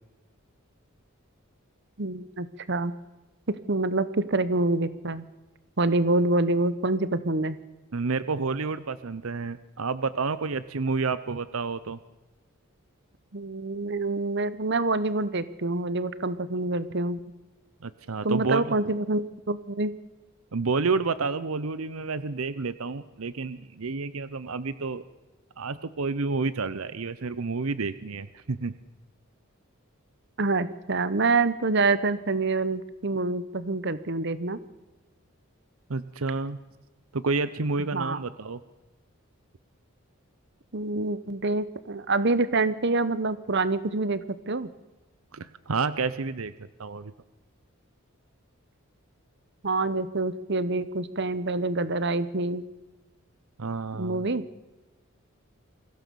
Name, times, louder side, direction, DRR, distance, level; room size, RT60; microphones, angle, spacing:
voice 1, 2.0-2.9 3.5-5.3 5.8-7.6 13.3-17.2 18.2-19.9 30.4-34.6 37.9-38.2 40.7-44.7 49.6-52.6 53.9-54.5, right 2 dB, 55° right, 15 dB, 1.0 m, -26 dB
voice 2, 7.9-12.0 17.8-18.8 20.5-25.0 25.6-28.7 35.9-36.6 37.1-38.6 45.3-46.5 46.8-47.1 53.6-54.2, right 4 dB, 80° right, 15 dB, 0.8 m, -29 dB
23.5 x 16.0 x 7.0 m, 1.1 s
head